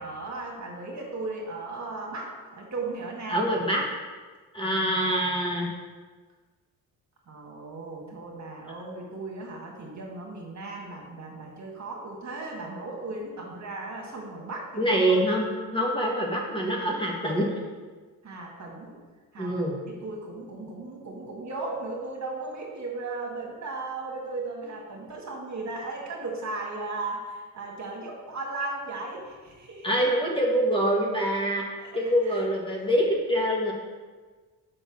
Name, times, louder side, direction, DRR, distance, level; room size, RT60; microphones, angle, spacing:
voice 1, 0.0-3.4 4.6-4.8 5.1-5.2 7.3-15.3 18.2-19.0 19.3-19.5 19.9-30.0 31.8-32.4, right 3 dB, 45° right, -1 dB, 2.0 m, -36 dB
voice 2, 3.3-3.8 4.5-5.7 14.8-17.5 19.4-19.8 29.8-31.6 31.9-33.7, equal, 15° left, -2 dB, 1.7 m, -25 dB
5.7 x 5.3 x 6.2 m, 1.4 s
supercardioid pair, 70°, 40 cm